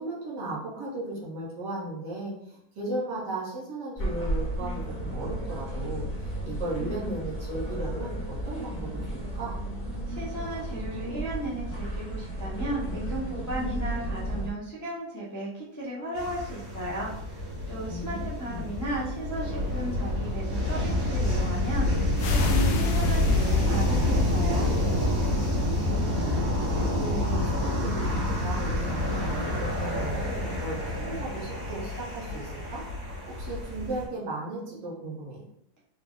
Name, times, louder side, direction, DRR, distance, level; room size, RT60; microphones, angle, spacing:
voice 1, 0.0-6.1 6.4-9.6 17.9-18.7 25.6-26.6 26.9-32.8 33.3-35.4, right 2 dB, 65° right, -6 dB, 2.0 m, -36 dB
sound 1, 4.0-14.5, right 1 dB, 10° left, 1.1 m, -33 dB
voice 2, 10.1-24.7, right 1 dB, 30° left, -7 dB, 0.3 m, -35 dB
sound 2, 16.1-34.0, left 1 dB, 90° right, 2.5 m, -27 dB
sound 3, 22.2-25.8, left 6 dB, 80° left, 0.7 m, -40 dB
4.8 x 2.4 x 3.7 m, 0.77 s
omnidirectional pair, 2.1 m